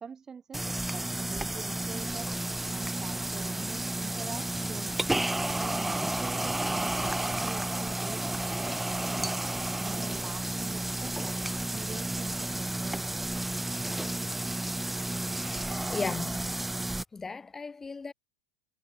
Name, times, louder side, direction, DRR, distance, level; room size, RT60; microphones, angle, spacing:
voice 1, 0.0-2.3 2.7-5.0 5.6-9.4 9.8-13.3, right 6 dB, 25° right, 5.9 m, -45 dB
sound 1, 0.5-17.0, right 1 dB, 5° right, 1.0 m, -32 dB
voice 2, 15.9-16.4 17.1-18.1, left 4 dB, 15° left, 7.2 m, -35 dB
hypercardioid pair, 100°, 2 cm